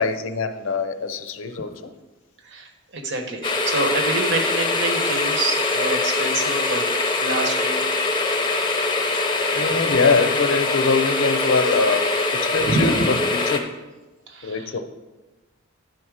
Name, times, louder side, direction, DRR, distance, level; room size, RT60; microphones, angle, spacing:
voice 1, 0.0-1.7 9.5-13.7 14.4-14.8, left 4 dB, 70° left, 10 dB, 0.6 m, -23 dB
voice 2, 2.4-6.8 7.2-7.8 12.6-13.1 14.3-14.7, right 2 dB, 60° right, 4 dB, 1.1 m, -26 dB
sound 1, 3.4-13.6, left 3 dB, 25° left, 0.7 m, -23 dB
10.5 x 4.2 x 4.8 m, 1.2 s
head